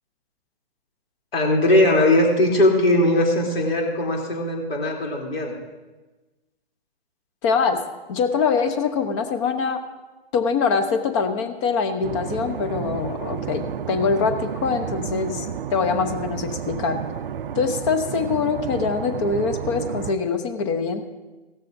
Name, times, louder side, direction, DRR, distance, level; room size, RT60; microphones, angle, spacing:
voice 1, 1.3-5.6, left 1 dB, 65° left, 0 dB, 3.3 m, -19 dB
voice 2, 7.4-7.8 8.1-9.8 10.3-17.0 17.5-21.1, left 5 dB, 30° left, 9 dB, 0.9 m, -24 dB
sound 1, 12.0-20.1, right 8 dB, 60° right, 0.6 m, -31 dB
16.5 x 13.0 x 2.7 m, 1.2 s
figure-of-eight pair, 135°, 32 cm